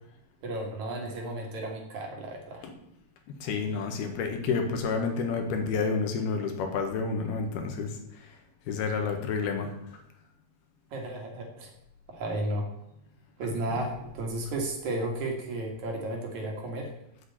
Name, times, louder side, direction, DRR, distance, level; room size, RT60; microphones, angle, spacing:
voice 1, 0.4-2.7 10.9-11.7 12.1-12.7 13.4-16.9, right 1 dB, 55° right, 1 dB, 3.0 m, -33 dB
voice 2, 3.3-7.9 8.7-9.7 13.7-13.8, left 5 dB, 80° left, 4 dB, 3.5 m, -29 dB
8.3 x 8.1 x 8.3 m, 0.81 s
omnidirectional pair, 4.4 m